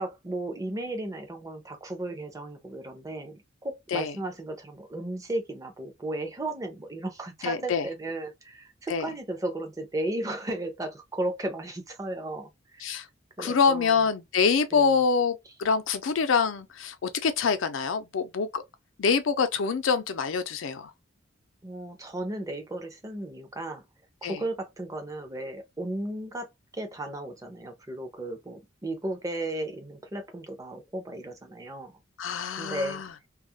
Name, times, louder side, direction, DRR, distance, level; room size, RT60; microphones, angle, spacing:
voice 1, 0.0-12.8 13.4-14.0 14.7-14.9 21.6-23.8 24.2-26.5 26.7-31.9 32.6-33.0, right 1 dB, 15° right, 0.6 m, -35 dB
voice 2, 7.4-7.9 8.9-9.1 12.8-13.1 13.4-18.6 19.0-20.9 24.2-24.4 32.2-33.1, left 5 dB, 85° left, 0.5 m, -25 dB
2.3 x 2.0 x 2.7 m
head